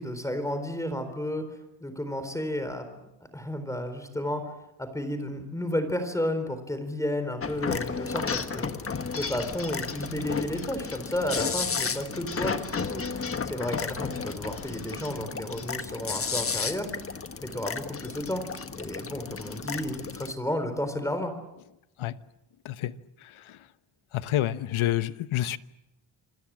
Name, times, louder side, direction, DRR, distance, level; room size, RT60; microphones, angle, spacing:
voice 1, 0.0-1.5 1.8-2.8 3.3-4.5 4.8-8.8 9.2-13.0 13.4-16.9 17.4-18.4 18.8-21.3, left 1 dB, 5° left, 3.9 m, -32 dB
sound 1, 7.4-20.3, left 5 dB, 30° left, 1.3 m, -33 dB
voice 2, 24.1-25.6, left 13 dB, 90° left, 1.1 m, -28 dB
28.0 x 23.0 x 7.5 m
wide cardioid pair, 150°, 47 cm